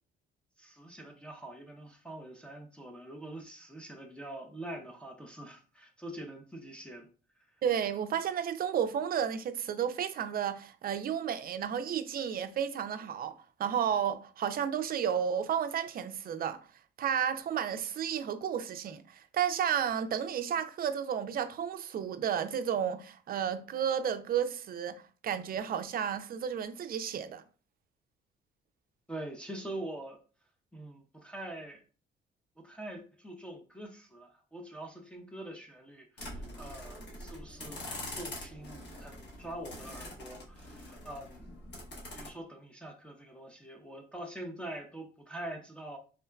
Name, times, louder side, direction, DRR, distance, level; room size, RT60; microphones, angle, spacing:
voice 1, 0.6-7.1 29.1-30.2 30.7-31.8 32.6-41.8 42.1-46.0, right 1 dB, 5° left, 0.5 m, -44 dB
voice 2, 7.6-16.7 17.0-27.4, right 8 dB, 50° right, 0.4 m, -32 dB
sound 1, 36.2-42.3, left 1 dB, 60° left, 1.3 m, -44 dB
3.7 x 2.2 x 2.2 m
cardioid pair, 90°, 20 cm